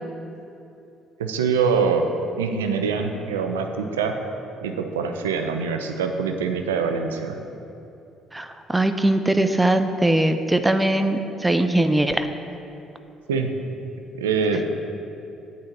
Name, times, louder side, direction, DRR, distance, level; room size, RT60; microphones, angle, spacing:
voice 1, 1.2-2.1 2.4-4.2 4.6-7.4 13.3-13.5 14.2-14.6, right 5 dB, 90° right, 5 dB, 0.7 m, -24 dB
voice 2, 8.3-12.3, right 1 dB, 15° right, 8 dB, 0.7 m, -21 dB
8.8 x 5.5 x 7.7 m, 2.8 s
hypercardioid pair, 55°, 0 cm